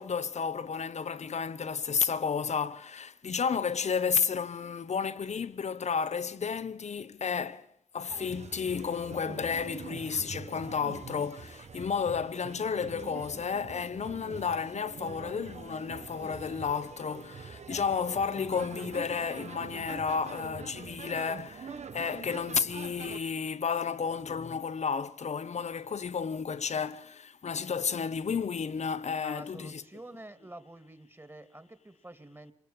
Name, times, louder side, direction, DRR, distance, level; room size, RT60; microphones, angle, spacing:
voice 1, 0.0-7.6 7.9-29.8, left 6 dB, 80° left, 1.1 m, -32 dB
sound 1, 8.1-23.2, right 5 dB, 80° right, 1.2 m, -44 dB
voice 2, 29.2-32.5, right 1 dB, 20° right, 2.6 m, -48 dB
26.0 x 21.5 x 8.8 m
cardioid pair, 45°, 11 cm